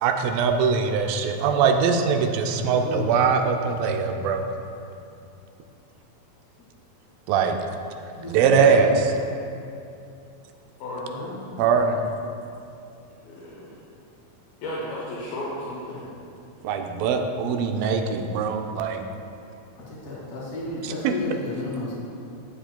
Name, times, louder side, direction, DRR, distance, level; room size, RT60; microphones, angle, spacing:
voice 1, 0.0-4.4 7.3-7.6 8.3-8.9 11.6-12.0 16.6-19.0 21.0-21.1, right 6 dB, 80° right, 4 dB, 2.2 m, -22 dB
voice 2, 2.5-3.1 8.1-8.9 11.1-12.0 15.9-16.1 16.5-16.6 19.9-21.9, left 2 dB, 30° left, -7 dB, 1.9 m, -34 dB
voice 3, 10.8-11.2 13.2-13.8 14.6-16.0, left 1 dB, 75° left, -6 dB, 2.8 m, -34 dB
12.5 x 7.6 x 2.2 m, 2.6 s
omnidirectional pair, 4.3 m